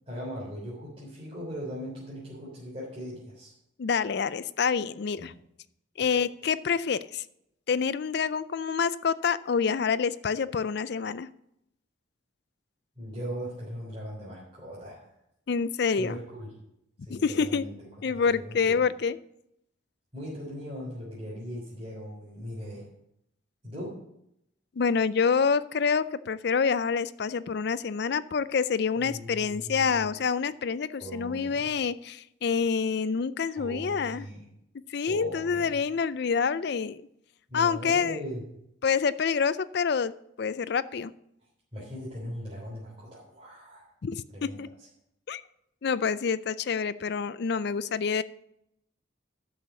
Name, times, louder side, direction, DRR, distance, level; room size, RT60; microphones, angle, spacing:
voice 1, 0.1-3.5 5.2-5.3 6.0-6.1 13.0-15.1 16.0-16.5 17.0-17.7 18.1-18.8 20.1-22.9 23.6-24.1 29.0-30.1 31.0-31.8 33.5-34.5 35.1-35.9 37.5-38.4 41.7-43.9 44.3-44.6, equal, 30° right, -9 dB, 3.5 m, -39 dB
voice 2, 3.8-5.3 6.0-7.2 7.7-11.3 15.5-16.1 17.1-17.6 18.0-19.2 24.8-34.2 34.9-37.0 37.5-38.2 38.8-40.1 40.4-41.1 44.0-44.7 45.3-45.4 45.8-48.2, left 6 dB, 55° left, 15 dB, 0.4 m, -27 dB
10.5 x 6.4 x 6.9 m, 0.79 s
head